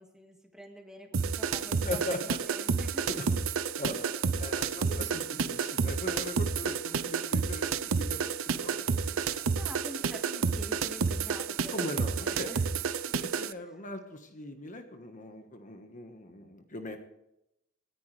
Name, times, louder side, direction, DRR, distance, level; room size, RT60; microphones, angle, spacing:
voice 1, 0.0-3.4 9.6-12.6 13.1-13.3 13.6-13.7, equal, 5° right, 2 dB, 2.0 m, -47 dB
sound 1, 1.1-13.5, right 5 dB, 80° right, 0.7 m, -30 dB
voice 2, 1.9-2.4 3.1-3.2 3.8-4.1 4.4-9.1 11.7-12.5 13.2-17.0, left 1 dB, 40° left, 5 dB, 1.4 m, -40 dB
26.0 x 10.0 x 3.3 m, 0.83 s
head